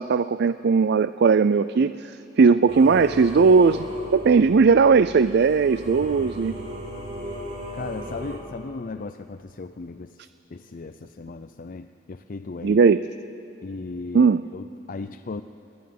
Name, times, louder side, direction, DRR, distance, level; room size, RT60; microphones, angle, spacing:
voice 1, 0.0-3.9 4.1-6.5 12.6-13.1 14.1-14.4, right 5 dB, 55° right, 14 dB, 0.4 m, -18 dB
Singing / Musical instrument, 2.7-8.4, equal, 35° right, 4.1 m, -36 dB
voice 2, 7.7-12.8 13.6-15.4, left 3 dB, 45° left, 8 dB, 0.5 m, -36 dB
29.5 x 11.5 x 9.3 m, 3.0 s
head